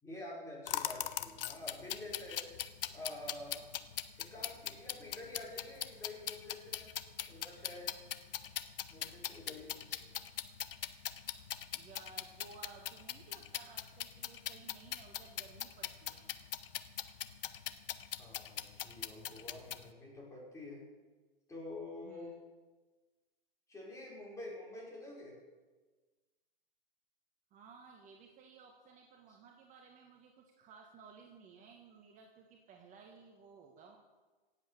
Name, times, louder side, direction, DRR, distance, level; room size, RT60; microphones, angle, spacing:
voice 1, 0.0-2.4 2.9-3.7 4.2-6.9 7.3-7.9 8.9-10.1 18.2-20.8 21.5-22.3 23.7-25.4, left 2 dB, 10° left, -4 dB, 5.2 m, -48 dB
sound 1, 0.7-19.9, left 11 dB, 65° left, 1.0 m, -41 dB
voice 2, 11.7-16.3 22.0-22.3 27.5-34.0, right 5 dB, 25° right, 2 dB, 1.5 m, -57 dB
17.5 x 8.3 x 6.9 m, 1.3 s
hypercardioid pair, 125°, 29 cm